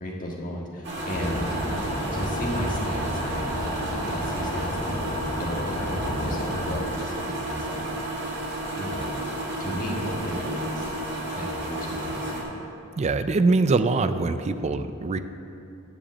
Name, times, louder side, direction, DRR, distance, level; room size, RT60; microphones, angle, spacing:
voice 1, 0.0-1.6 2.1-3.7 4.0-4.9 5.3-8.3 8.7-9.1 9.6-10.9 11.3-12.6, equal, 40° left, -2 dB, 1.6 m, -34 dB
sound 1, 0.8-12.4, right 1 dB, 55° right, 2.0 m, -32 dB
sound 2, 1.1-6.8, left 1 dB, 20° left, 0.9 m, -31 dB
voice 2, 13.0-15.2, right 3 dB, 30° right, 11 dB, 0.4 m, -23 dB
10.0 x 5.1 x 7.3 m, 2.7 s
head